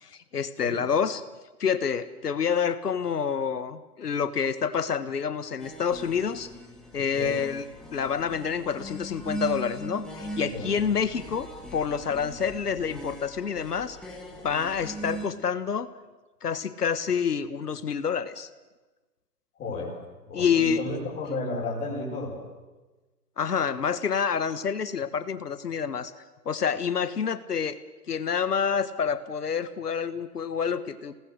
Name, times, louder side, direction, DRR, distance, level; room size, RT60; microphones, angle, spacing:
voice 1, 0.0-1.2 1.6-6.5 6.9-7.6 7.9-14.0 14.4-15.9 16.4-18.5 20.3-20.8 23.4-26.1 26.4-27.8 28.1-31.2, left 7 dB, 70° left, 13 dB, 1.5 m, -28 dB
sound 1, 5.6-15.3, right 1 dB, ahead, 2.3 m, -39 dB
voice 2, 19.6-19.9 20.3-22.4, left 3 dB, 15° left, -5 dB, 5.9 m, -32 dB
27.5 x 19.0 x 6.6 m, 1.2 s
figure-of-eight pair, 140°, 48 cm